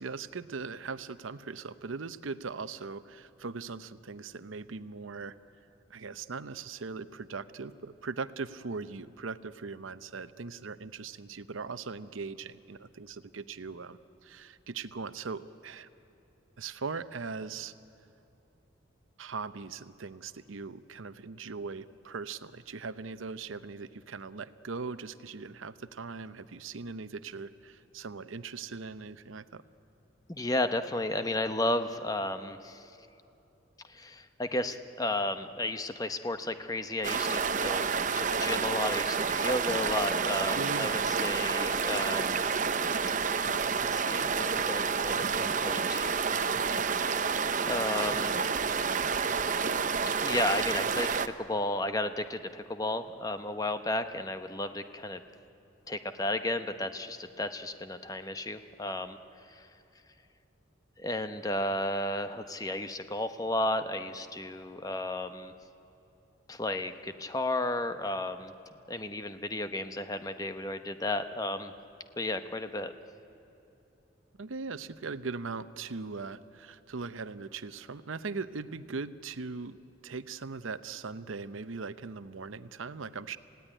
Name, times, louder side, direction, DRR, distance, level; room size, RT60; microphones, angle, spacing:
voice 1, 0.0-5.4 5.9-15.9 16.6-17.7 19.2-29.6 40.5-40.9 74.4-79.8 80.0-83.4, right 4 dB, 80° right, 13 dB, 0.7 m, -40 dB
voice 2, 30.3-32.9 33.9-42.5 43.9-46.1 47.6-48.5 50.2-55.2 55.9-59.2 59.5-59.7 61.0-65.5 66.5-68.5 68.9-71.7 72.2-72.9, left 1 dB, 20° left, 9 dB, 0.8 m, -33 dB
sound 1, 37.0-51.3, right 5 dB, 40° right, 0.7 m, -29 dB
27.5 x 17.0 x 10.0 m, 2.9 s
head